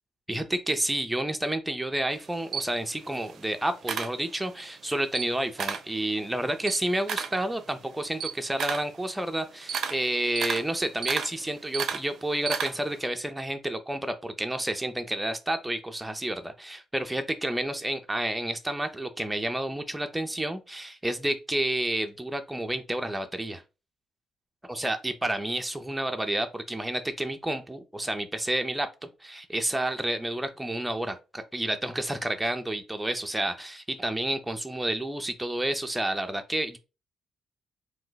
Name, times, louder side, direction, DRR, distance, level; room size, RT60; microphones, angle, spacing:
voice 1, 0.3-23.6 24.7-28.9 29.2-36.8, right 1 dB, 10° right, 0.5 m, -30 dB
Camera, 2.1-4.7 5.0-5.9 6.3-13.0, right 7 dB, 65° right, 0.5 m, -34 dB
2.6 x 2.1 x 3.9 m
cardioid pair, 90°, 0 cm